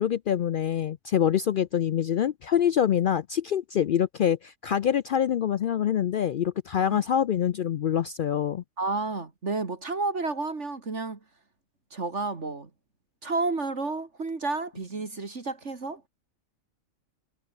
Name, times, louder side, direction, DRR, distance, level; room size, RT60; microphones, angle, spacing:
voice 1, 0.0-8.6, left 9 dB, 70° left, 0.4 m, -25 dB
voice 2, 8.8-11.2 11.9-12.7 13.2-16.0, right 3 dB, 55° right, 2.7 m, -31 dB
omnidirectional pair, 1.4 m